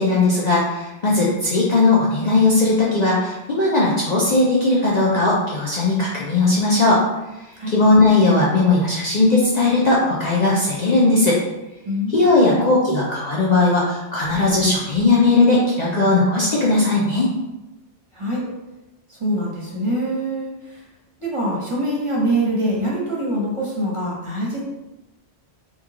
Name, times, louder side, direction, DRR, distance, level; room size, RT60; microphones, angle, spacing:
voice 1, 0.0-7.0 7.4-11.4 12.1-17.3, left 2 dB, 50° left, -5 dB, 0.5 m, -18 dB
voice 2, 11.8-12.7 18.1-18.4 19.1-20.8 21.2-24.6, right 1 dB, 30° right, -5 dB, 0.8 m, -24 dB
3.0 x 2.3 x 3.6 m, 1.0 s
omnidirectional pair, 1.1 m